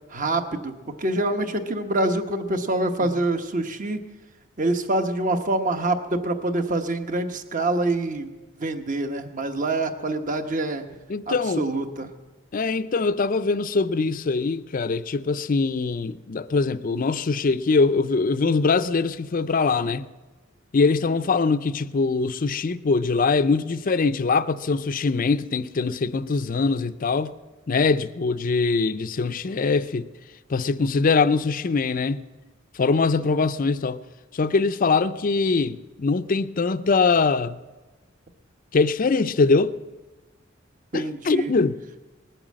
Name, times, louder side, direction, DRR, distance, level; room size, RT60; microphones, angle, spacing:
voice 1, 0.1-0.7 1.0-4.0 4.6-8.3 8.6-10.8 11.3-12.1 33.2-33.3 40.9-41.5, right 2 dB, 40° right, 1.1 m, -25 dB
voice 2, 11.1-11.7 12.5-20.1 20.7-27.3 27.7-30.1 30.5-32.2 32.7-34.0 34.3-37.6 38.7-39.7 40.9-41.8, left 4 dB, 45° left, 0.5 m, -22 dB
20.0 x 8.9 x 7.5 m
head